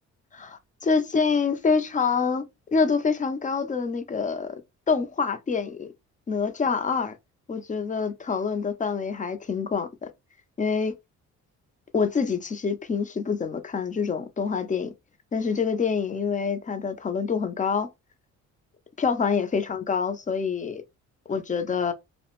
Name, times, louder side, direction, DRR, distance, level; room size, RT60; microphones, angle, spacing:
voice 1, 0.3-2.4 2.7-4.6 4.9-5.9 6.3-7.1 7.5-10.1 10.6-10.9 11.9-14.9 15.3-17.9 19.0-20.8 21.3-21.9, left 5 dB, 25° left, 0.5 m, -26 dB
2.3 x 2.1 x 2.9 m
cardioid pair, 90°, 30 cm